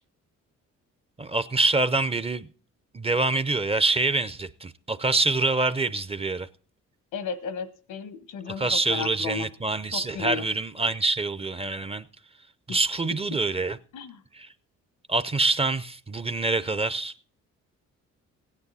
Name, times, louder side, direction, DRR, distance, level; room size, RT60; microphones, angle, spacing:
voice 1, 1.2-2.5 2.9-6.5 8.5-12.0 12.7-13.8 15.1-17.1, right 3 dB, 20° right, 0.5 m, -25 dB
voice 2, 7.1-9.5 9.9-10.5 12.7-12.8 13.9-14.2, left 6 dB, 85° left, 1.1 m, -34 dB
16.0 x 9.7 x 4.1 m
cardioid pair, 90°, 30 cm